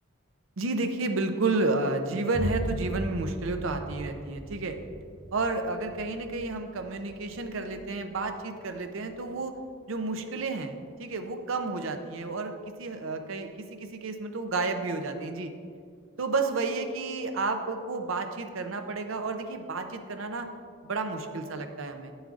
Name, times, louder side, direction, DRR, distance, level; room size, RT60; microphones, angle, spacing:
voice 1, 0.6-4.8 5.3-9.5 9.9-15.5 16.2-20.5 20.8-22.1, right 3 dB, 70° right, 6 dB, 0.6 m, -31 dB
Boom, 2.3-10.2, right 1 dB, 15° right, 0.3 m, -39 dB
9.4 x 7.1 x 2.5 m, 2.2 s
head